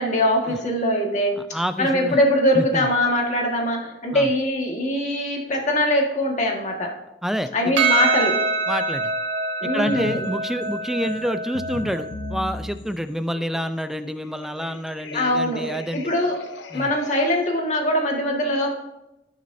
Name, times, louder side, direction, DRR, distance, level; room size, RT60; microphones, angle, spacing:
voice 1, 0.0-6.9 7.5-8.4 9.6-10.3 15.1-15.6 15.9-16.4 16.7-18.7, left 1 dB, 40° left, 0 dB, 1.8 m, -22 dB
voice 2, 1.4-2.2 2.5-2.9 4.1-4.3 7.2-7.7 8.7-9.1 9.7-16.1 16.7-16.9, equal, ahead, 10 dB, 0.4 m, -28 dB
Percussion, 7.8-12.4, right 3 dB, 90° right, 1.7 m, -25 dB
sound 1, 9.8-10.3 10.6-17.5, left 1 dB, 70° left, 0.7 m, -37 dB
15.5 x 6.3 x 2.7 m, 0.92 s
head